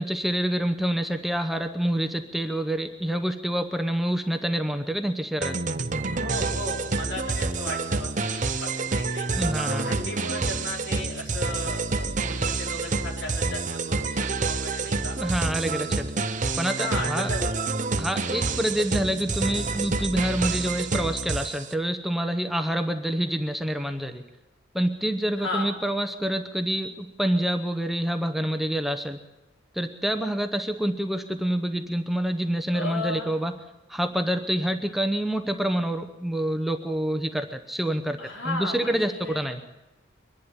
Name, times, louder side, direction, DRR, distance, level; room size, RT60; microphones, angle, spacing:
voice 1, 0.0-5.6 9.3-10.0 15.2-16.1 16.6-17.3 18.0-24.2 24.7-29.2 29.7-33.5 33.9-38.2 38.4-39.6, right 1 dB, ahead, 6 dB, 0.8 m, -27 dB
sound 1, 5.4-21.7, right 3 dB, 40° right, 0.9 m, -28 dB
voice 2, 6.1-9.3 9.8-15.2 16.8-17.7 25.4-25.7 32.7-33.3 38.2-39.4, left 2 dB, 75° left, 0 dB, 4.8 m, -35 dB
23.0 x 11.5 x 9.8 m, 1.0 s
head